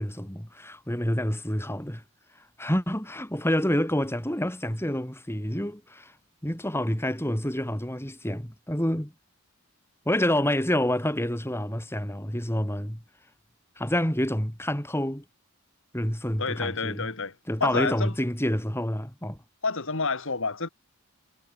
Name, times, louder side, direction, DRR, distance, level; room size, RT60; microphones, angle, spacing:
voice 1, 0.0-2.0 2.6-6.1 6.4-9.1 10.1-13.0 13.8-15.2 15.9-17.1 17.5-19.4, left 1 dB, 10° left, 3.9 m, -28 dB
voice 2, 16.4-17.3 17.6-18.1 19.6-20.7, left 4 dB, 60° left, 2.4 m, -29 dB
head